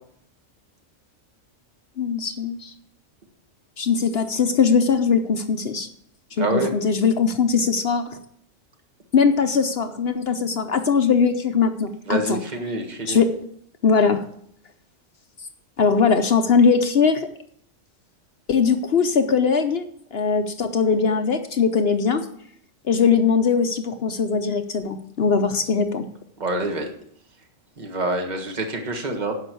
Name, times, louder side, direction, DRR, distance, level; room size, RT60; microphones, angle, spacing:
voice 1, 2.0-2.7 3.8-5.9 6.4-8.2 9.1-12.4 13.1-13.5 13.8-14.2 15.8-17.3 18.5-19.8 20.1-22.3 22.8-26.1, left 5 dB, 55° left, 8 dB, 0.9 m, -20 dB
voice 2, 6.4-6.7 12.0-13.2 26.4-26.9 27.8-29.3, right 2 dB, 35° right, 3 dB, 1.7 m, -26 dB
11.0 x 5.5 x 8.2 m, 0.67 s
omnidirectional pair, 1.3 m